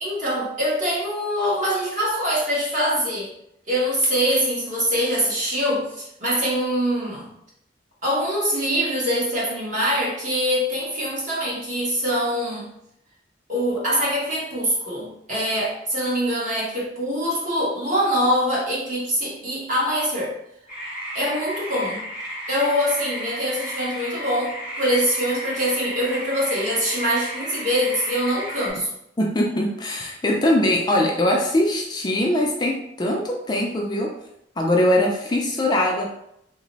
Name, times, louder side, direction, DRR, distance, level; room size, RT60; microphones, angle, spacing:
voice 1, 0.0-3.3 3.7-7.3 8.0-12.7 13.5-20.3 21.1-22.0 22.5-28.9, equal, 45° right, -6 dB, 1.2 m, -24 dB
sound 1, 20.7-28.7, equal, 5° right, 0.8 m, -33 dB
voice 2, 29.2-34.1 34.6-36.1, left 1 dB, 25° left, 0 dB, 0.4 m, -21 dB
3.0 x 2.0 x 3.9 m, 0.77 s
head